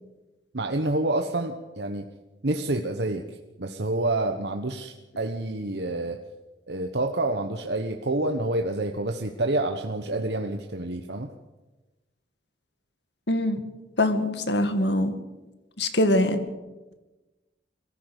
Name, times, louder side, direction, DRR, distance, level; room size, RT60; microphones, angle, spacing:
voice 1, 0.5-2.1 2.4-6.2 6.7-11.3, right 2 dB, 65° right, 5 dB, 1.2 m, -28 dB
voice 2, 13.3-13.6 14.0-15.2 15.8-16.5, left 1 dB, 70° left, 8 dB, 2.1 m, -23 dB
22.0 x 15.0 x 8.3 m, 1.1 s
head